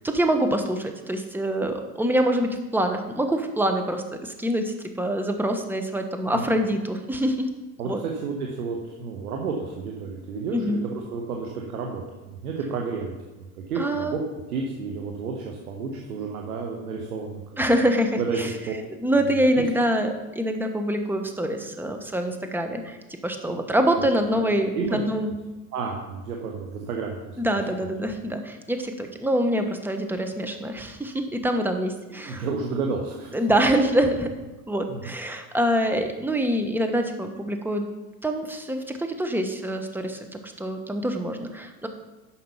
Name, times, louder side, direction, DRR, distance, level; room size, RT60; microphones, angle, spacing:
voice 1, 0.0-7.5 7.8-8.0 10.5-10.8 13.8-14.3 17.6-18.5 19.0-25.3 27.4-32.5 33.3-34.3 34.7-37.9 38.2-41.9, right 1 dB, 5° right, 5 dB, 1.1 m, -25 dB
voice 2, 7.8-14.2 14.5-17.6 18.2-18.4 18.7-18.8 19.3-19.6 24.3-24.5 24.7-25.0 25.7-27.6 32.3-33.3 34.9-35.1, right 5 dB, 90° right, 1 dB, 1.3 m, -31 dB
8.5 x 6.0 x 5.6 m, 1.1 s
hypercardioid pair, 90°, 43 cm